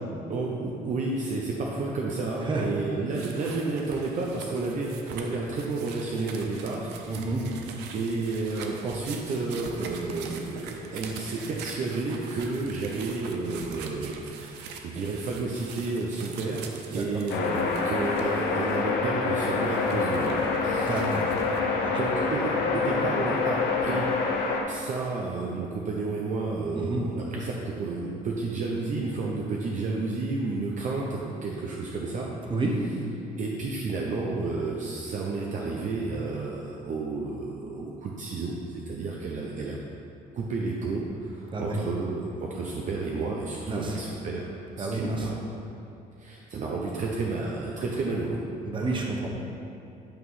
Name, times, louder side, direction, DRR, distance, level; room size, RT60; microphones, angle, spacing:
voice 1, 0.3-7.4 7.9-20.4 20.6-21.0 21.9-24.1 24.7-32.3 33.4-39.8 40.3-44.5 44.8-45.4 46.2-48.4 48.8-49.0, right 3 dB, 45° right, -2 dB, 0.7 m, -31 dB
sound 1, 3.1-18.8 19.3-21.6, right 5 dB, 85° right, 0.6 m, -43 dB
voice 2, 7.1-7.4 16.9-17.0 20.7-21.3 21.8-21.9 26.7-27.0 32.5-32.7 41.5-41.8 43.7-44.0 44.8-45.3 48.7-49.3, right 2 dB, 30° right, 0 dB, 1.0 m, -29 dB
sound 2, 17.3-24.6, left 4 dB, 85° left, 0.8 m, -26 dB
8.8 x 3.1 x 5.5 m, 2.7 s
cardioid pair, 110°, 17 cm